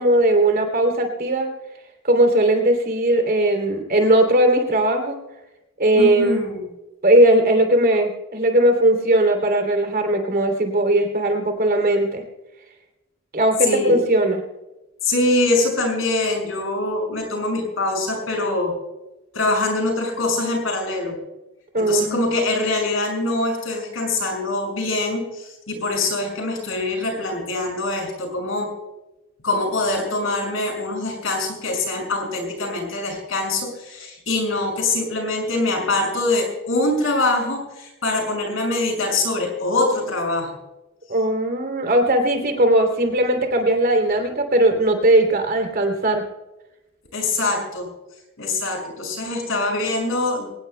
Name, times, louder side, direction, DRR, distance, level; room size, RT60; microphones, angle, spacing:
voice 1, 0.0-1.5 2.0-5.2 5.8-6.5 7.0-12.2 13.3-14.4 21.7-22.3 41.1-46.2, right 1 dB, 50° right, 4 dB, 3.0 m, -18 dB
voice 2, 5.9-6.7 13.6-14.0 15.0-18.7 19.3-21.2 21.8-28.7 29.4-40.5 47.1-47.9 48.4-50.5, left 2 dB, 75° left, 2 dB, 6.2 m, -23 dB
23.5 x 19.0 x 2.2 m, 1.0 s
head